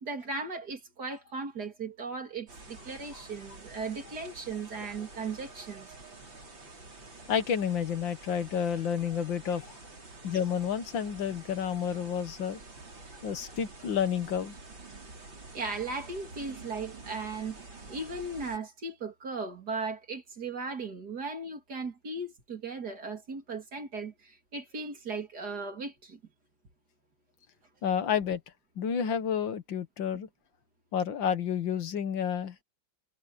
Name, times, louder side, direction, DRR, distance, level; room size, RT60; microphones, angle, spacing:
voice 1, 0.0-5.9 15.5-17.6 17.9-26.2, right 3 dB, 50° right, 3.4 m, -37 dB
sound 1, 2.5-18.6, right 3 dB, 70° right, 6.2 m, -48 dB
voice 2, 7.3-9.8 10.2-12.6 13.2-14.6 27.8-28.4 28.8-30.3 30.9-32.6, left 8 dB, 70° left, 1.9 m, -30 dB
omnidirectional pair, 2.1 m